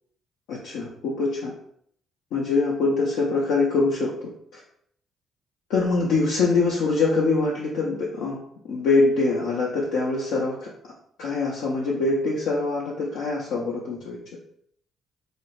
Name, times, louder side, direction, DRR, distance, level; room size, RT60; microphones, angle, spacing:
voice 1, 0.5-1.5 2.3-4.6 5.7-8.4 8.7-10.7 11.2-14.2, left 3 dB, 75° left, -4 dB, 0.4 m, -24 dB
2.4 x 2.0 x 3.0 m, 0.68 s
hypercardioid pair, 50°, 0 cm